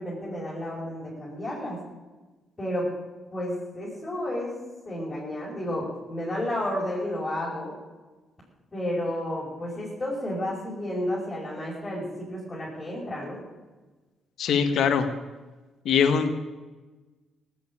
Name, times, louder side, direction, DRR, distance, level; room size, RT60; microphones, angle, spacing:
voice 1, 0.0-1.8 2.6-2.9 3.3-4.5 4.9-7.8 8.7-13.4, left 1 dB, 25° left, -7 dB, 5.4 m, -31 dB
voice 2, 14.4-15.1 15.8-16.3, left 7 dB, 70° left, 9 dB, 1.5 m, -22 dB
17.0 x 8.1 x 8.6 m, 1.2 s
cardioid pair, 90°, 0 cm